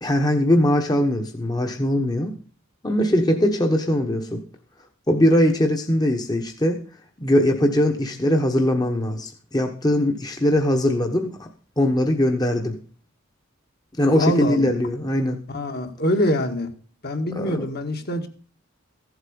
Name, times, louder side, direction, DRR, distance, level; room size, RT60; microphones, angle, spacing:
voice 1, 0.0-2.4 2.8-4.4 5.1-6.8 7.2-11.5 11.8-12.8 14.0-15.4 17.3-17.6, left 1 dB, 20° left, 1.2 m, -21 dB
voice 2, 14.2-14.7 15.5-16.7 17.0-18.3, left 1 dB, 50° left, 1.9 m, -24 dB
15.0 x 8.1 x 5.4 m
head